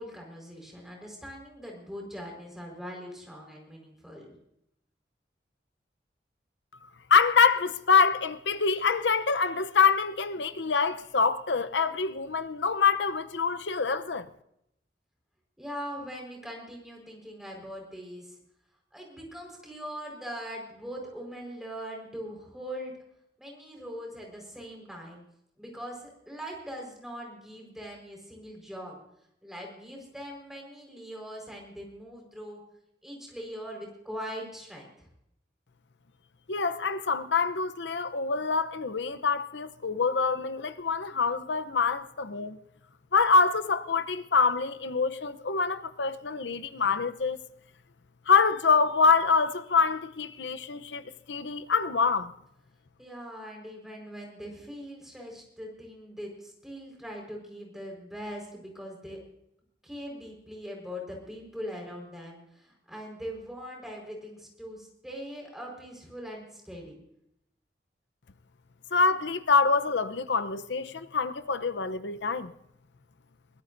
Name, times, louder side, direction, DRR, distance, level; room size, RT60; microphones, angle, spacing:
voice 1, 0.0-4.3 15.6-18.4 18.9-22.9 23.4-25.2 25.6-29.0 29.4-32.6 33.0-35.1 53.0-59.2 59.8-67.0, equal, ahead, 4.7 m, -41 dB
voice 2, 7.1-14.3 36.5-42.6 43.1-47.4 48.3-52.3 68.9-72.5, left 5 dB, 85° left, 0.8 m, -25 dB
23.0 x 17.0 x 2.7 m
head